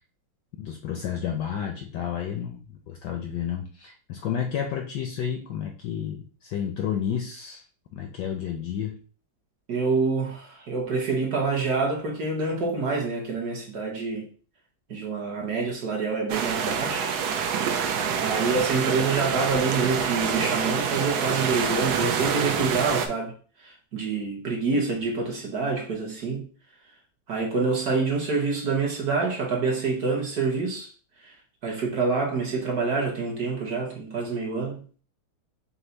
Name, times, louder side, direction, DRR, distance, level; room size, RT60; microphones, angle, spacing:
voice 1, 0.6-7.6 7.9-9.0, left 8 dB, 75° left, 1.0 m, -31 dB
voice 2, 9.7-14.3 14.9-17.1 17.8-23.3 23.6-26.4 27.3-30.9 31.2-31.3 31.6-34.8, right 4 dB, 60° right, 1.1 m, -27 dB
sound 1, 16.3-23.1, right 7 dB, 85° right, 0.8 m, -26 dB
5.5 x 2.0 x 3.8 m
omnidirectional pair, 2.3 m